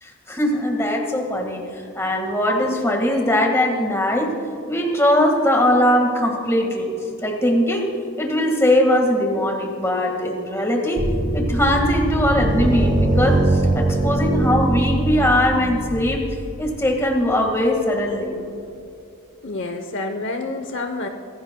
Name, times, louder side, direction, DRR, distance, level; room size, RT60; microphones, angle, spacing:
voice 1, 0.0-4.3 4.7-6.9 7.2-7.9 8.2-11.1 11.3-16.2 16.6-18.3, left 1 dB, 10° left, 2 dB, 1.7 m, -20 dB
sound 1, 11.0-17.5, right 1 dB, 35° right, 1.0 m, -22 dB
voice 2, 19.4-21.1, left 2 dB, 55° left, 5 dB, 0.8 m, -28 dB
24.0 x 16.5 x 2.3 m, 2.6 s
head